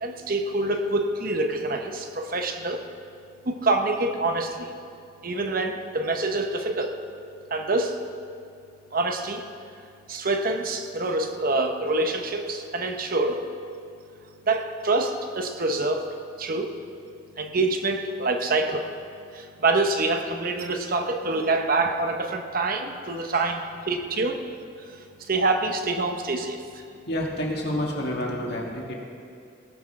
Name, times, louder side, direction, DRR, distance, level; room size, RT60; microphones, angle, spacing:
voice 1, 0.0-2.8 3.4-4.7 5.2-7.0 7.5-8.0 8.9-9.4 10.1-13.4 14.5-16.7 17.4-18.9 19.3-24.4 24.9-26.8, right 2 dB, 50° right, 5 dB, 0.9 m, -26 dB
voice 2, 27.1-28.9, left 1 dB, 60° left, -2 dB, 2.1 m, -29 dB
18.0 x 6.3 x 5.9 m, 2.5 s
head